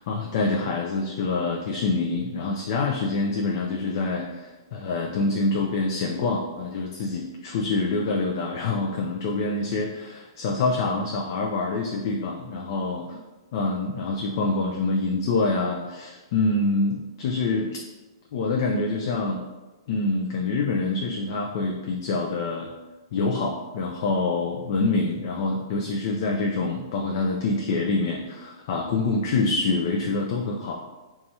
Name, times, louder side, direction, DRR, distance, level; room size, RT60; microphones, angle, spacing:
voice 1, 0.0-13.0 13.5-17.8 18.3-19.4 19.9-22.7 23.1-31.0, left 3 dB, 50° left, 0 dB, 0.4 m, -26 dB
2.8 x 2.3 x 4.1 m, 1.2 s
hypercardioid pair, 145°, 2 cm